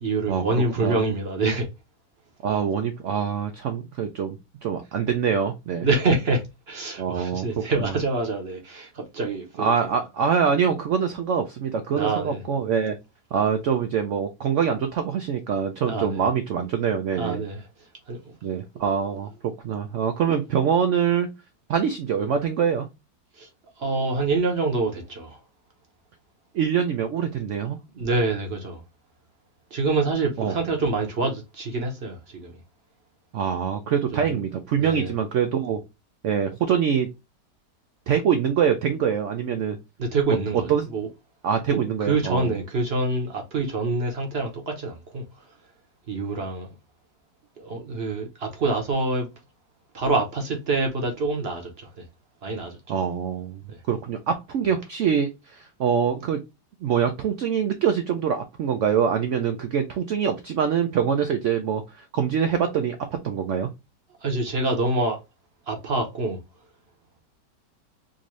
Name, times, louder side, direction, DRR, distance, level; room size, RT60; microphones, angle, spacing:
voice 1, 0.0-1.7 5.8-10.0 11.9-12.4 15.8-16.2 17.1-17.6 18.1-18.3 18.7-18.8 23.4-23.5 23.8-25.4 27.9-28.8 29.7-32.6 34.1-34.4 34.8-35.1 40.0-41.1 41.7-45.2 46.1-46.7 47.6-49.3 49.9-52.0 52.4-52.8 53.7-53.8 64.2-65.2 65.7-66.4, right 3 dB, 50° right, 0.8 m, -26 dB
voice 2, 2.4-5.9 7.0-7.5 7.8-8.0 9.6-13.0 13.3-17.4 18.4-19.3 19.6-21.3 21.7-22.9 26.5-27.8 30.4-30.6 33.3-35.8 36.2-37.1 38.1-39.8 40.7-40.9 41.4-42.5 52.9-53.6 53.9-56.4 56.8-63.7, right 7 dB, 90° right, 0.6 m, -24 dB
3.8 x 2.6 x 3.0 m
omnidirectional pair, 1.9 m